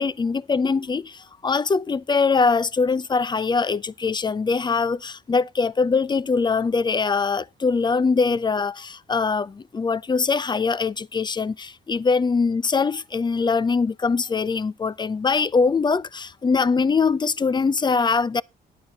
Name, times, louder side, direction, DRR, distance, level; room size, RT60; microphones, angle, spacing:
voice 1, 0.0-18.4, left 4 dB, 20° left, 0.5 m, -22 dB
10.5 x 9.1 x 3.9 m
cardioid pair, 90°, 20 cm